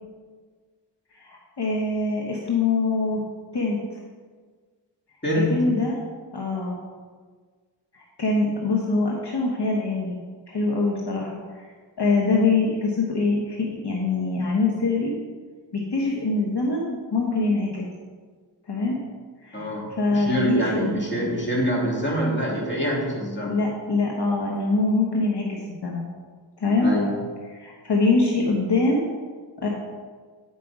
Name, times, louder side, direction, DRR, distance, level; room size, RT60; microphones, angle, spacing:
voice 1, 1.2-3.2 3.5-3.8 5.5-6.0 6.3-6.8 7.9-10.2 10.5-11.7 12.0-15.1 15.7-17.8 18.7-19.0 19.4-21.0 23.5-26.0 26.6-26.9 27.5-29.0 29.6-29.7, left 3 dB, 65° left, -2 dB, 1.2 m, -24 dB
voice 2, 5.2-5.7 19.5-23.6 26.8-27.2, equal, 25° left, -4 dB, 2.6 m, -25 dB
9.2 x 5.6 x 4.9 m, 1.5 s
wide cardioid pair, 50°, 44 cm